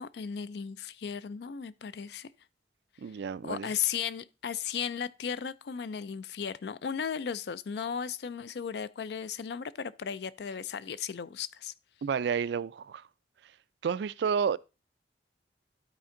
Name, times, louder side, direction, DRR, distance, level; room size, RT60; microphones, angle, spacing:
voice 1, 0.0-2.3 3.4-11.7, left 7 dB, 65° left, 0.4 m, -35 dB
voice 2, 3.0-3.7 12.0-13.0 13.8-14.6, right 6 dB, 70° right, 0.3 m, -30 dB
12.0 x 4.3 x 3.7 m
head